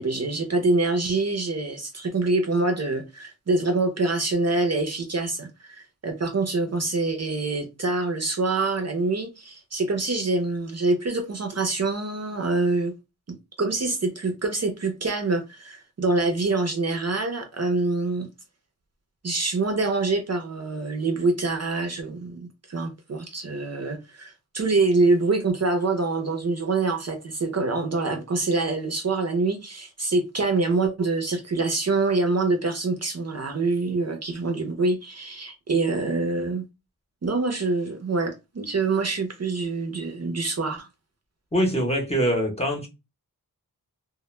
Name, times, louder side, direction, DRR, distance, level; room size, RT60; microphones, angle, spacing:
voice 1, 0.0-12.9 13.6-18.3 19.2-36.6 37.2-40.9, right 3 dB, 40° right, 0.6 m, -25 dB
voice 2, 41.5-42.9, equal, 15° left, 0.8 m, -23 dB
2.1 x 2.1 x 3.1 m
wide cardioid pair, 85°, 38 cm